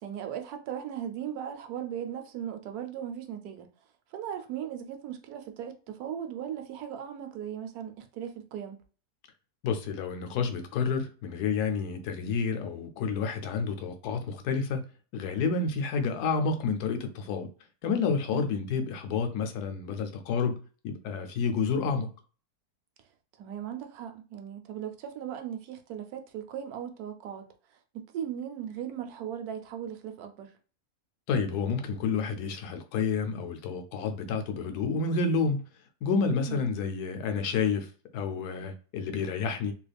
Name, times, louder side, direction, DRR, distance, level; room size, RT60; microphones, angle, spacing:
voice 1, 0.0-3.7 4.1-8.8 18.3-18.5 23.4-27.5 27.9-30.5 36.5-36.7, right 9 dB, 75° right, 1.1 m, -38 dB
voice 2, 9.6-14.8 15.1-17.5 17.8-20.6 20.8-22.1 31.3-35.6 36.0-39.7, left 5 dB, 90° left, 1.1 m, -29 dB
3.0 x 2.3 x 3.3 m
omnidirectional pair, 1.7 m